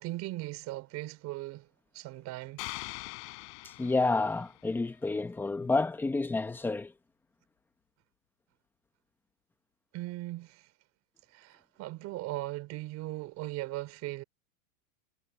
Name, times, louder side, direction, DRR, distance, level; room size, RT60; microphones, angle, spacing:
voice 1, 0.0-1.7 1.9-2.6 9.9-10.7 11.3-14.2, right 18 dB, 35° right, 4.2 m, -38 dB
sound 1, 2.6-4.7, left 35 dB, 50° left, 6.2 m, -43 dB
voice 2, 3.6-6.9, left 3 dB, 5° left, 0.8 m, -29 dB
supercardioid pair, 155°, 43 cm